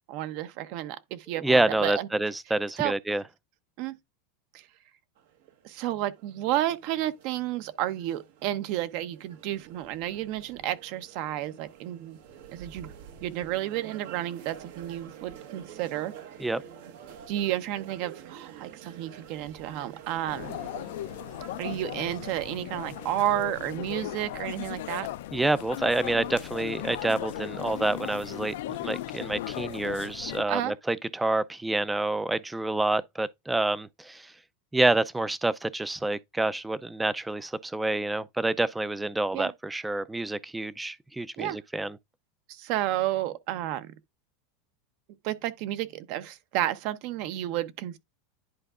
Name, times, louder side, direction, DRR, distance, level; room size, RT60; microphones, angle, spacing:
voice 1, 0.1-2.1 2.8-2.9 3.8-4.0 4.5-4.7 5.6-12.2 12.5-12.9 13.2-16.1 17.3-20.6 21.6-25.1 30.5-30.7 39.3-39.5 41.4-41.6 42.5-43.9 45.2-48.0, right 13 dB, 55° right, 0.7 m, -31 dB
voice 2, 1.4-3.2 16.4-16.6 25.3-34.3 34.7-42.0, right 2 dB, 5° right, 0.4 m, -28 dB
sound 1, 5.2-23.2, right 8 dB, 75° right, 1.2 m, -48 dB
sound 2, 20.3-30.4, left 14 dB, 75° left, 0.4 m, -37 dB
10.5 x 4.5 x 2.4 m
supercardioid pair, 145°, 0 cm